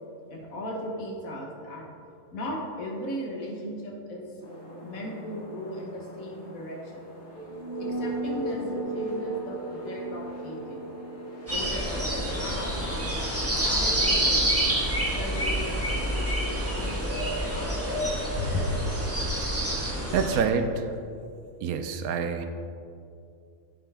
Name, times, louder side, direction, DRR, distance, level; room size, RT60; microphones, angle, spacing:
voice 1, 0.3-1.9 2.3-4.3 4.8-7.1 7.8-10.8 11.5-14.7 15.2-18.1 18.4-18.6 19.9-20.4, left 1 dB, 70° left, -1 dB, 1.6 m, -37 dB
sound 1, 4.4-17.5, right 1 dB, 50° left, 1.5 m, -38 dB
sound 2, 11.5-20.4, right 1 dB, 10° right, 1.2 m, -27 dB
voice 2, 20.1-20.7 21.6-22.5, right 6 dB, 85° right, 8 dB, 1.1 m, -26 dB
9.0 x 5.6 x 3.5 m, 2.4 s
omnidirectional pair, 1.5 m